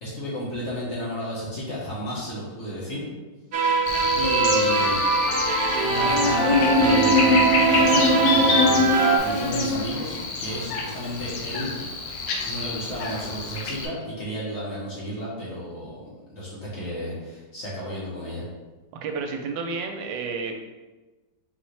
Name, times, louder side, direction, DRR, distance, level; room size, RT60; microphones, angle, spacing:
voice 1, 0.0-3.1 4.2-5.1 5.8-11.7 12.4-18.4, equal, 45° left, -6 dB, 1.4 m, -32 dB
sound 1, 3.5-9.2, right 4 dB, 60° right, 0.8 m, -22 dB
Buzz, 3.9-13.9, left 2 dB, 75° left, 1.4 m, -24 dB
voice 2, 19.0-20.5, right 4 dB, 85° right, 3 dB, 1.3 m, -30 dB
4.2 x 3.9 x 3.2 m, 1.2 s
omnidirectional pair, 2.0 m